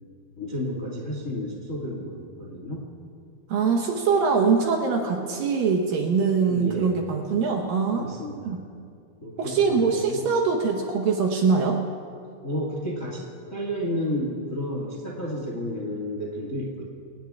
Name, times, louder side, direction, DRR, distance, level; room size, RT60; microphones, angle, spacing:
voice 1, 0.4-2.9 6.4-7.0 8.0-8.5 9.2-10.3 12.4-16.8, left 1 dB, 45° left, -3 dB, 1.0 m, -31 dB
voice 2, 3.5-8.1 8.4-8.6 9.4-11.8, right 5 dB, 70° right, 2 dB, 2.4 m, -23 dB
26.5 x 18.0 x 2.4 m, 2.4 s
omnidirectional pair, 4.9 m